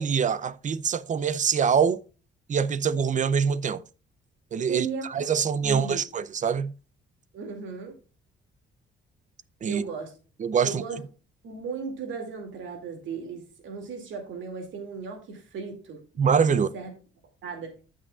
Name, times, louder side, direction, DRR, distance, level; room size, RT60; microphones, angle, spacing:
voice 1, 0.0-2.0 2.5-3.8 4.5-6.7 9.6-9.8 10.4-10.8 16.2-16.7, right 6 dB, 40° right, 0.6 m, -24 dB
voice 2, 4.7-5.3 5.6-6.0 7.3-7.9 9.7-10.1 10.6-11.0 11.4-16.0 16.5-16.9 17.4-17.7, right 5 dB, 75° right, 2.4 m, -36 dB
14.5 x 6.3 x 2.4 m
cardioid pair, 90°, 20 cm